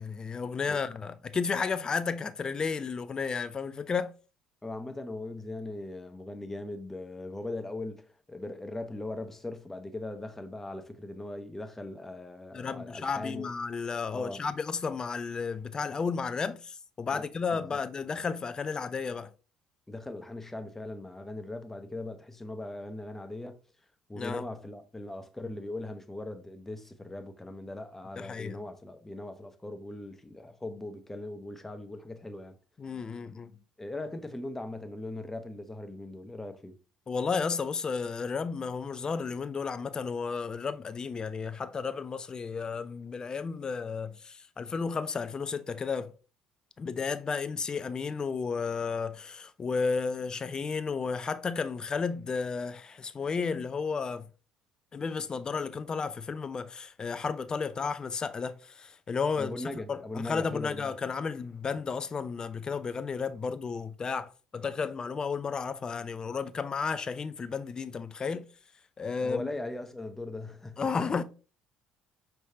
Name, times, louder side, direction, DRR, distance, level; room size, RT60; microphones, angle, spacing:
voice 1, 0.0-4.1 12.5-19.3 24.2-24.4 28.2-28.6 32.8-33.5 37.1-46.1 46.8-54.3 54.9-68.5 69.0-69.5 70.8-71.2, left 5 dB, 30° left, 0.4 m, -33 dB
voice 2, 4.6-13.5 14.1-14.4 17.1-17.3 17.5-17.8 19.9-23.6 24.1-32.5 33.8-36.7 59.3-60.9 69.2-70.9, left 2 dB, 15° left, 0.8 m, -39 dB
5.4 x 3.3 x 2.7 m
hypercardioid pair, 60°, 2 cm